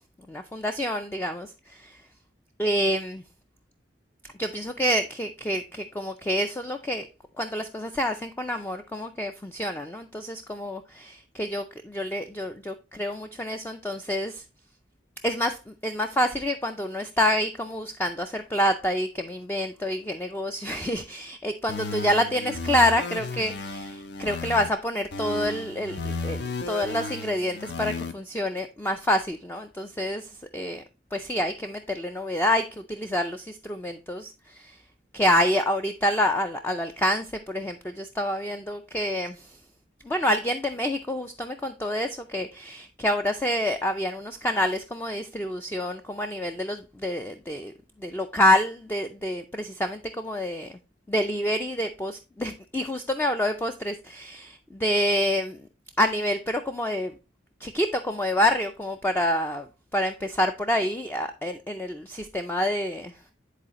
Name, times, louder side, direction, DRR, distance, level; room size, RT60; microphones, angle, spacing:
voice 1, 0.3-2.0 2.6-3.2 4.4-7.1 7.4-14.4 15.2-30.8 31.1-34.8 35.1-39.6 40.0-47.7 48.0-50.8 51.1-55.7 56.0-57.1 57.6-63.2, left 1 dB, 10° left, 0.3 m, -27 dB
sound 1, 21.7-24.7 25.1-28.1, left 3 dB, 65° left, 0.6 m, -34 dB
10.0 x 4.1 x 2.9 m
head